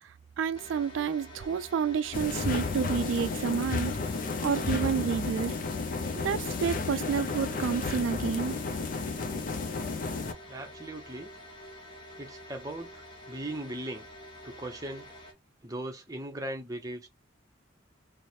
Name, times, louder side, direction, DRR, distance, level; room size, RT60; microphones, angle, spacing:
voice 1, 0.0-3.9 4.4-5.5 6.2-8.5, right 6 dB, 90° right, 0.3 m, -30 dB
sound 1, 0.5-15.3, left 1 dB, 25° left, 0.9 m, -48 dB
sound 2, 2.1-10.3, left 4 dB, 45° left, 0.4 m, -32 dB
voice 2, 10.5-11.3 12.2-14.1 14.4-15.1 15.6-17.1, right 1 dB, 20° right, 0.7 m, -39 dB
3.1 x 2.0 x 4.2 m
head